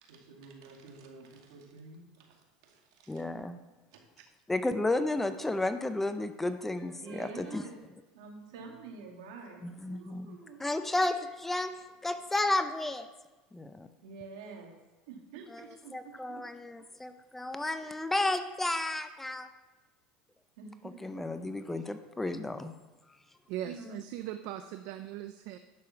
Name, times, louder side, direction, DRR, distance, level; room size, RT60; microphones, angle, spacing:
voice 1, 0.0-3.2 3.9-4.0 7.0-7.7 8.1-10.6 14.0-14.7 15.1-16.4 18.1-18.3 20.6-21.2 23.6-24.0, right 4 dB, 85° right, 1 dB, 2.3 m, -48 dB
voice 2, 3.1-3.6 4.5-7.6 9.6-11.7 12.0-13.1 13.5-13.9 15.5-19.5 21.0-22.7, left 2 dB, 10° left, 10 dB, 0.6 m, -32 dB
voice 3, 23.5-25.6, right 12 dB, 65° right, 8 dB, 0.5 m, -39 dB
10.5 x 6.9 x 5.8 m, 1.1 s
supercardioid pair, 125°, 3 cm